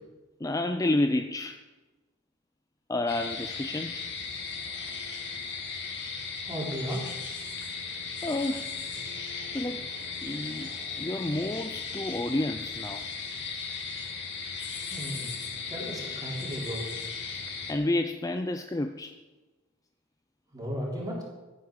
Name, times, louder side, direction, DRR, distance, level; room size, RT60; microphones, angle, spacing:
voice 1, 0.4-1.6 2.9-4.1 7.6-7.7 8.2-8.7 9.4-9.8 10.2-13.0 17.7-19.1, left 2 dB, 15° left, 7 dB, 0.4 m, -30 dB
sound 1, 3.1-17.7, left 5 dB, 55° left, 2.0 m, -37 dB
voice 2, 6.4-7.2 14.8-15.4 15.7-16.9 20.5-21.2, equal, 20° right, -4 dB, 3.9 m, -35 dB
14.5 x 8.6 x 6.4 m, 1.2 s
head